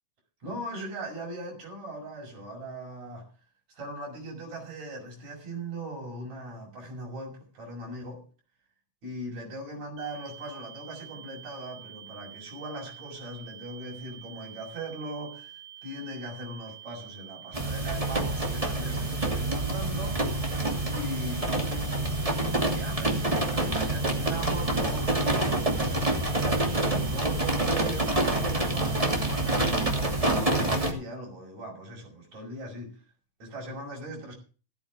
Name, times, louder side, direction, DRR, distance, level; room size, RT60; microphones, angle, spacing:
voice 1, 0.4-3.3 3.7-8.2 9.0-20.5 20.9-22.1 22.6-33.0 33.4-34.3, right 1 dB, 65° right, 6.8 m, -39 dB
sound 1, 10.0-30.0, right 11 dB, 45° right, 4.4 m, -47 dB
sound 2, 17.5-30.9, right 2 dB, 10° right, 2.5 m, -27 dB
16.0 x 13.5 x 3.6 m
omnidirectional pair, 3.4 m